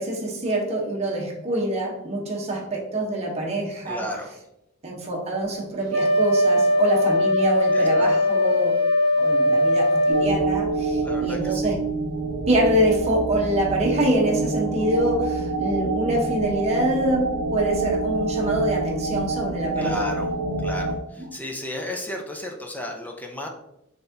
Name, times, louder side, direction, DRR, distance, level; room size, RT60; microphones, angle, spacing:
voice 1, 0.0-4.1 4.8-8.8 9.2-11.8 12.5-20.0 21.2-21.3, right 1 dB, 30° right, -2 dB, 0.8 m, -25 dB
voice 2, 3.9-4.4 7.7-8.1 11.0-11.7 19.8-20.3 20.6-23.5, left 1 dB, 10° left, 2 dB, 0.4 m, -33 dB
Wind instrument woodwind instrument, 5.9-10.3, left 1 dB, 50° right, 1.0 m, -20 dB
sound 1, 10.1-20.9, right 3 dB, 80° right, 0.7 m, -27 dB
4.0 x 3.3 x 2.6 m, 0.83 s
head